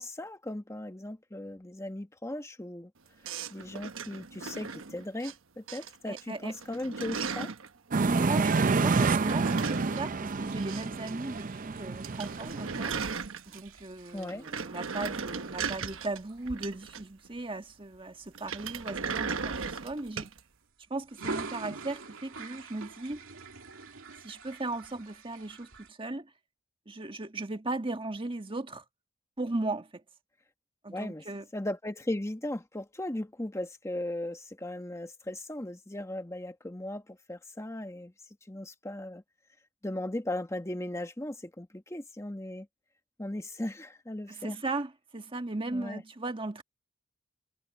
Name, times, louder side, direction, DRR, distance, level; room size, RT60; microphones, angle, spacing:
voice 1, 0.0-2.9 3.5-7.5 14.1-14.4 30.9-31.2 31.5-38.1 38.5-39.2 39.8-42.7 43.2-44.6 45.7-46.0, left 1 dB, 15° left, 1.3 m, -37 dB
sound 1, 3.2-5.3 5.7-6.2 6.5-7.7 9.0-11.1 11.4-11.5 11.8-11.9 12.0-13.8 14.2-17.3 18.3-20.4, right 5 dB, 75° right, 1.1 m, -37 dB
voice 2, 6.1-6.6 8.0-12.9 13.5-20.3 20.9-23.2 24.2-26.3 26.9-28.8 29.4-30.0 30.8-31.5 44.3-46.6, right 2 dB, 25° right, 1.5 m, -37 dB
sound 2, 7.9-13.0, right 4 dB, 40° right, 0.6 m, -28 dB
Binaural Toilet, 10.4-18.3 18.8-19.0 19.4-20.5 21.0-25.9, right 3 dB, 90° right, 2.2 m, -46 dB
head